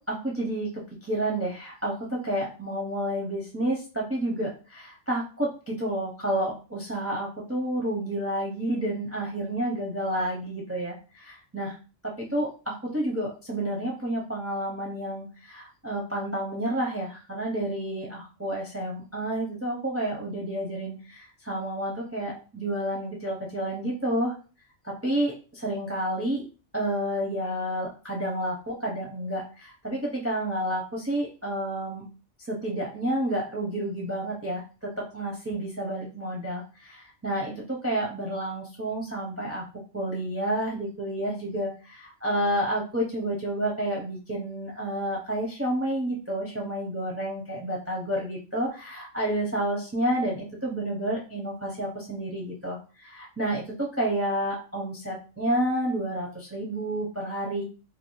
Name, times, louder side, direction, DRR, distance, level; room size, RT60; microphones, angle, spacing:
voice 1, 0.0-11.7 12.0-24.3 24.8-26.4 26.7-32.0 32.5-39.6 39.9-57.6, right 1 dB, 20° right, -2 dB, 0.4 m, -30 dB
2.6 x 2.4 x 3.0 m, 0.35 s
omnidirectional pair, 1.2 m